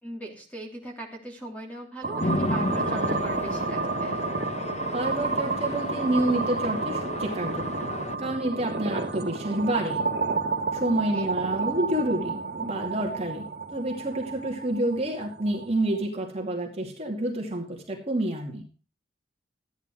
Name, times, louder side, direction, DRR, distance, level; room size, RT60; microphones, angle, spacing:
voice 1, 0.0-4.1 11.1-11.3, right 1 dB, 10° left, 0 dB, 3.1 m, -40 dB
sound 1, 2.0-16.0, right 4 dB, 55° right, 1.7 m, -31 dB
Chatter / Traffic noise roadway noise / Train, 2.2-8.2, left 2 dB, 40° left, 0.8 m, -33 dB
voice 2, 4.9-7.8 8.2-10.0 10.7-13.5 13.7-18.6, right 1 dB, 35° right, 1 dB, 2.4 m, -28 dB
14.0 x 9.7 x 4.8 m, 0.37 s
head